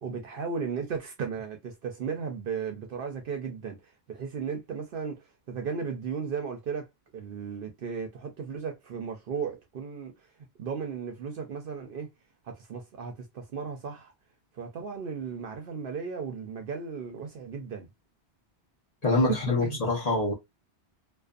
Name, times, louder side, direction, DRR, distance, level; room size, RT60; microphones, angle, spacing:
voice 1, 0.0-6.9 7.1-10.1 10.6-12.1 12.5-14.1 14.6-17.9 19.3-19.8, right 6 dB, 60° right, 0.7 m, -35 dB
voice 2, 19.0-20.3, left 2 dB, 40° left, 1.0 m, -25 dB
2.5 x 2.4 x 2.3 m
omnidirectional pair, 1.1 m